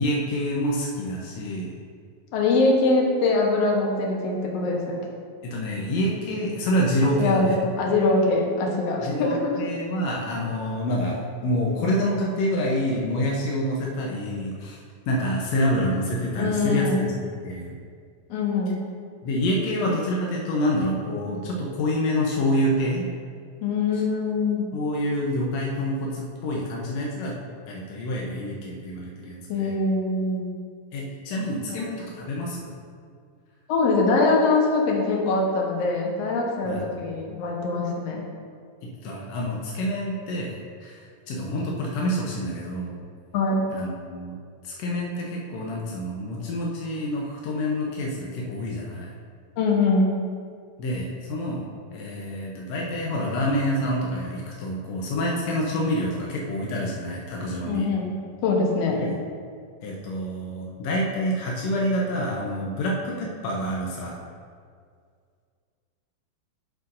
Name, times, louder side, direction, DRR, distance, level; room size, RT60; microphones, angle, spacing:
voice 1, 0.0-1.7 5.4-7.6 9.0-14.8 15.1-17.2 17.4-17.7 19.2-23.1 24.7-27.3 27.7-29.8 30.9-32.7 36.6-37.1 38.8-43.0 43.7-44.3 44.6-49.1 50.8-57.9 58.9-59.2 59.8-64.2, equal, 85° left, -3 dB, 1.5 m, -27 dB
voice 2, 2.3-5.0 7.2-9.4 16.4-17.1 18.3-18.8 23.6-24.7 29.5-30.5 31.7-31.8 33.7-38.2 43.3-43.6 49.6-50.2 57.6-58.1 58.4-59.0, left 3 dB, 70° left, -2 dB, 1.6 m, -23 dB
8.9 x 7.7 x 2.6 m, 2.1 s
omnidirectional pair, 4.2 m